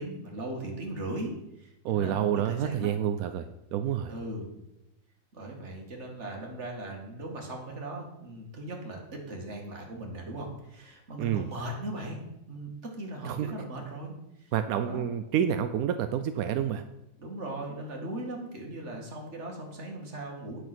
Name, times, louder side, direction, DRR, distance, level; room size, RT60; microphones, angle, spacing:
voice 1, 0.0-2.9 4.1-4.5 5.3-12.2 12.5-14.5 14.8-15.1 17.2-20.6, right 1 dB, 40° right, 0 dB, 2.2 m, -38 dB
voice 2, 1.8-3.5 3.7-4.1 11.2-11.5 13.2-13.5 14.5-16.8, right 9 dB, 70° right, 8 dB, 0.8 m, -28 dB
9.2 x 6.8 x 6.0 m, 0.88 s
omnidirectional pair, 2.0 m